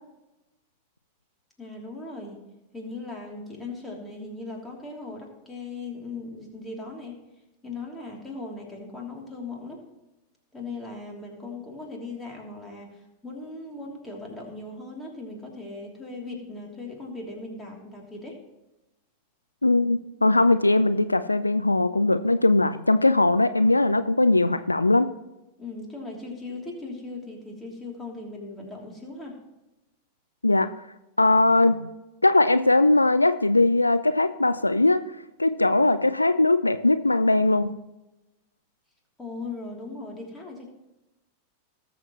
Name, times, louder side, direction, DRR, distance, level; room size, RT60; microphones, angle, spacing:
voice 1, 1.6-2.4 2.7-7.2 7.6-9.8 10.5-18.4 25.6-29.4 39.2-40.7, left 3 dB, 10° left, -1 dB, 3.1 m, -38 dB
voice 2, 19.6-25.1 30.4-30.7 31.2-31.9 32.2-35.0 35.4-37.8, left 2 dB, 85° left, 12 dB, 0.4 m, -20 dB
19.0 x 7.2 x 3.1 m, 0.99 s
figure-of-eight pair, 90°, 0 cm